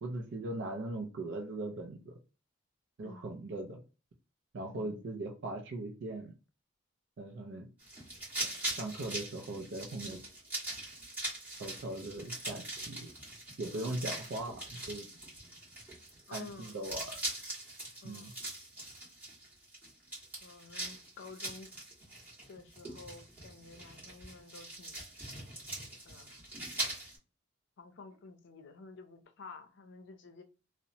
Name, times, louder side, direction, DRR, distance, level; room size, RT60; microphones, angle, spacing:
voice 1, 0.0-2.2 3.0-3.8 4.5-6.3 7.2-7.7 8.7-10.2 11.6-13.1 13.6-15.1 16.3-17.2 18.0-18.3, right 2 dB, 60° right, 0.4 m, -39 dB
voice 2, 3.0-3.3 4.7-5.0 7.5-7.6 13.7-14.1 16.3-16.8 18.0-18.3 20.4-21.7 22.5-25.0 26.0-26.4 27.8-30.4, left 4 dB, 65° left, 0.5 m, -51 dB
sound 1, 7.8-27.2, right 1 dB, 10° right, 1.4 m, -42 dB
2.9 x 2.0 x 2.6 m
head